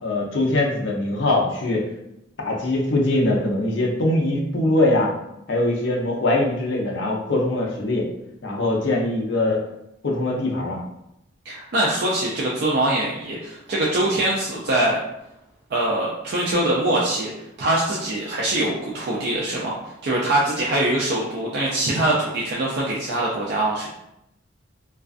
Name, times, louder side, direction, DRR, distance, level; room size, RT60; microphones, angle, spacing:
voice 1, 0.0-1.9 2.4-5.1 5.5-8.0 8.4-9.6 10.0-10.8, left 2 dB, 60° left, -1 dB, 0.5 m, -22 dB
voice 2, 11.5-15.0 15.7-17.3 17.6-23.9, right 1 dB, 50° right, -5 dB, 0.4 m, -23 dB
2.3 x 2.3 x 2.4 m, 0.83 s
head